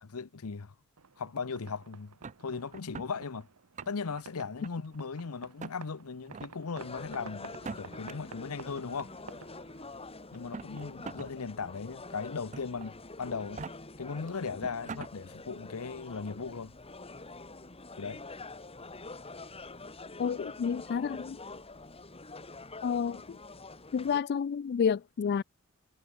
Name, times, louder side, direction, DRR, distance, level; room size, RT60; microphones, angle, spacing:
voice 1, 0.0-0.7 1.2-2.1 2.4-3.5 3.9-9.1 10.3-13.6 14.0-16.7 18.0-18.2, left 5 dB, 80° left, 0.8 m, -38 dB
sound 1, 1.0-10.1, right 5 dB, 85° right, 1.0 m, -52 dB
sound 2, 2.2-3.1 3.6-4.2 4.6-5.2 5.6-5.8 6.3-6.5 7.5-8.1 9.2-9.3 10.3-11.3 11.7-11.8 12.5-12.9 13.4-13.7 14.3-14.4 14.6-15.1, right 4 dB, 35° right, 0.6 m, -42 dB
sound 3, 6.8-24.2, left 3 dB, 25° left, 3.0 m, -46 dB
voice 2, 20.2-21.4 22.8-23.2 23.9-25.4, left 6 dB, 50° left, 0.3 m, -29 dB
head